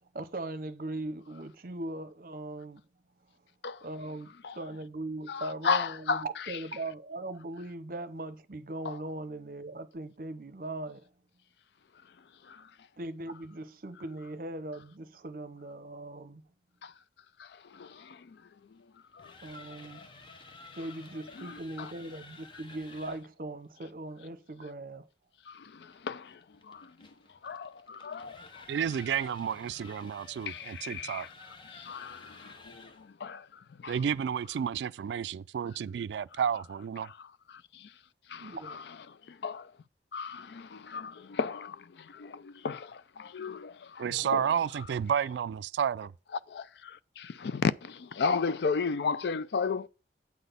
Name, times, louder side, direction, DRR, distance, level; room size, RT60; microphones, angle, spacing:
voice 1, 0.1-2.8 3.8-11.1 13.0-16.4 19.4-20.1 20.7-25.1 38.4-38.8, right 2 dB, 50° right, 0.7 m, -39 dB
voice 2, 5.3-6.6 8.8-9.0 12.4-12.7 16.8-16.9 17.4-18.4 18.7-18.8 19.1-19.3 21.4-21.9 25.5-27.1 27.4-28.6 30.5-31.3 31.7-33.5 33.8-34.0 37.2-37.9 38.3-39.0 39.3-39.7 40.1-44.5 46.5-49.9, left 5 dB, 75° left, 0.4 m, -35 dB
sound 1, 19.0-23.3 25.9-33.1, left 3 dB, 30° left, 0.7 m, -52 dB
voice 3, 28.7-31.3 33.9-37.1 44.0-46.1, right 8 dB, 80° right, 0.3 m, -31 dB
8.5 x 4.0 x 6.7 m
head